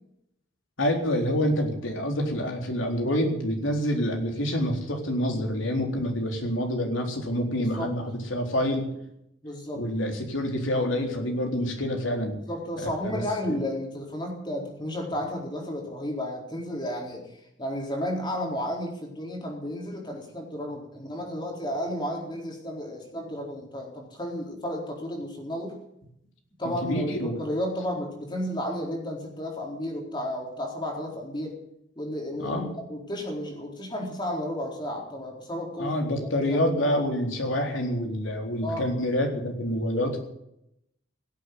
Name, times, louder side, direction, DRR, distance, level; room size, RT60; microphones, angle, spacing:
voice 1, 0.8-8.9 9.7-12.4 12.8-13.2 13.5-13.6 26.8-27.4 32.3-32.8 35.8-40.2, equal, 85° left, 3 dB, 4.0 m, -27 dB
voice 2, 7.6-7.9 9.4-9.8 12.5-25.8 26.6-31.5 32.0-36.1 36.5-36.6 38.6-38.9, equal, 25° left, 0 dB, 4.2 m, -33 dB
17.0 x 8.5 x 9.6 m, 0.79 s
head